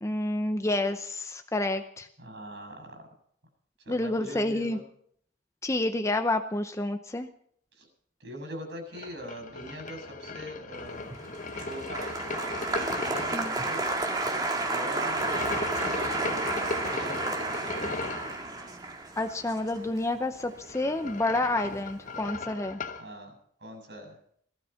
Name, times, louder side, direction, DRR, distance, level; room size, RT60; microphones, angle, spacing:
voice 1, 0.0-2.1 3.9-4.8 5.6-7.3 13.3-13.5 19.2-22.8, left 2 dB, 15° left, 7 dB, 0.7 m, -29 dB
voice 2, 2.2-3.1 3.8-4.8 7.7-7.9 8.2-11.1 11.5-12.1 12.7-13.8 14.5-18.0 23.0-24.2, equal, 65° right, 5 dB, 7.1 m, -42 dB
sound 1, 8.9-13.5 15.1-18.4 20.5-23.1, left 3 dB, 45° left, 1.0 m, -37 dB
Applause, 11.0-21.4 21.6-22.2, right 2 dB, 20° right, 2.0 m, -32 dB
18.5 x 12.5 x 5.8 m, 0.65 s
head